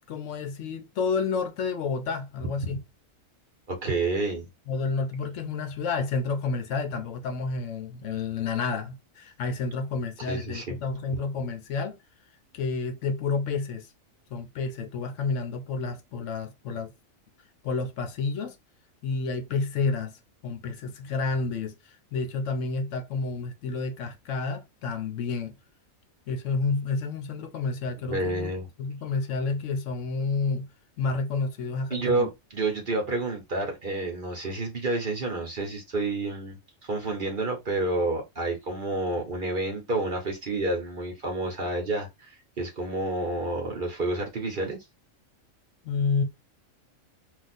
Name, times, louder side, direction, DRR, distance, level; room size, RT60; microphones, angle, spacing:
voice 1, 0.1-2.8 4.7-12.0 12.5-13.9 14.3-16.9 17.6-18.6 19.0-20.1 20.4-25.5 26.3-28.5 28.8-30.7 31.0-32.3 45.8-46.2, left 4 dB, 70° left, 0.9 m, -30 dB
voice 2, 3.7-4.5 10.3-10.8 28.1-28.7 31.9-36.6 36.8-44.8, right 2 dB, 45° right, 0.9 m, -29 dB
2.5 x 2.3 x 4.0 m
omnidirectional pair, 1.4 m